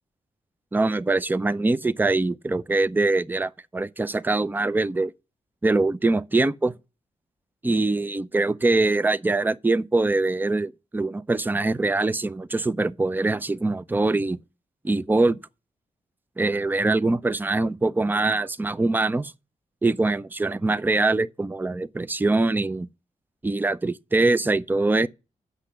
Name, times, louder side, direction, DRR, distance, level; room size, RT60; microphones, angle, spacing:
voice 1, 0.7-5.1 5.6-6.7 7.6-14.4 14.8-15.4 16.4-19.3 19.8-22.9 23.4-25.1, right 2 dB, 15° right, 0.5 m, -23 dB
8.1 x 6.7 x 7.2 m
cardioid pair, 80°, 13 cm